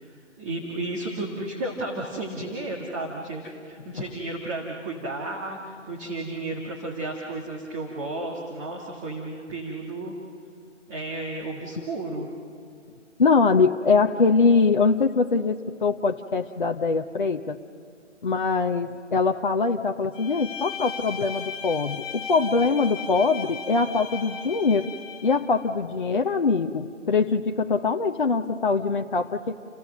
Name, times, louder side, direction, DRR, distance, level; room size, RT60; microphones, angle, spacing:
voice 1, 0.4-10.1 10.9-12.3, right 2 dB, 15° right, -2 dB, 1.9 m, -33 dB
voice 2, 13.2-15.6 15.8-17.6 18.2-24.9 25.2-29.5, left 4 dB, 45° left, 4 dB, 0.9 m, -23 dB
Bowed string instrument, 20.1-25.5, left 5 dB, 15° left, 3.4 m, -37 dB
30.0 x 29.5 x 6.6 m, 2.3 s
figure-of-eight pair, 150°, 37 cm